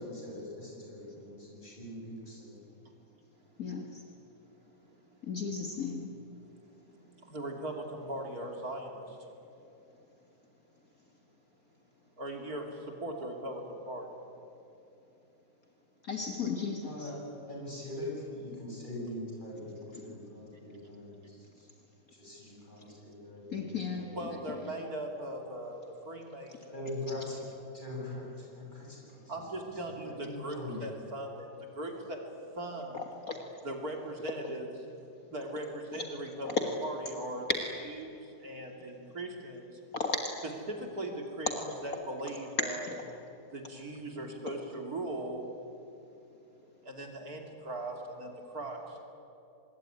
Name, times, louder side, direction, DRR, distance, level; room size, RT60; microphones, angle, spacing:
voice 1, 0.0-2.6 16.8-17.2 17.5-21.7 22.2-24.4 26.7-27.4 27.7-28.3 28.5-29.2 30.0-30.8, left 1 dB, 25° left, -3 dB, 8.0 m, -42 dB
voice 2, 3.6-4.0 5.2-6.1 16.0-17.1 19.9-20.2 23.5-24.1 33.3-33.4 36.4-36.5 39.9-40.2, left 5 dB, 50° left, 3 dB, 2.1 m, -35 dB
voice 3, 7.2-9.2 12.2-14.1 24.1-26.9 29.3-32.2 32.6-33.1 33.6-34.7 35.3-36.5 36.8-37.5 37.8-39.8 40.7-41.5 41.8-42.9 43.5-45.4 46.8-49.0, right 1 dB, 55° right, 3 dB, 3.3 m, -39 dB
25.5 x 21.0 x 9.9 m, 2.9 s
omnidirectional pair, 2.0 m